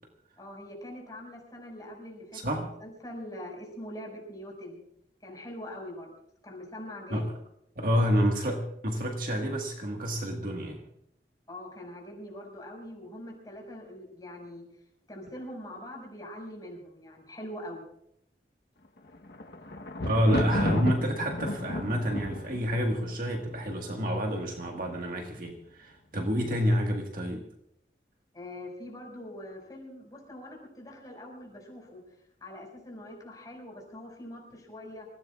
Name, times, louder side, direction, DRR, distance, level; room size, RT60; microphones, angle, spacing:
voice 1, 0.4-4.8 5.2-6.1 6.4-7.3 11.5-14.7 15.1-17.8 28.3-32.0 32.4-35.1, left 1 dB, 20° left, -1 dB, 5.5 m, -43 dB
voice 2, 2.3-2.7 7.1-7.2 7.7-10.8 20.0-27.5, equal, 50° right, 2 dB, 1.7 m, -28 dB
Thunder, 19.0-24.1 24.8-25.3 25.6-25.7, left 1 dB, 65° left, 1.1 m, -33 dB
27.0 x 17.0 x 2.4 m, 0.74 s
head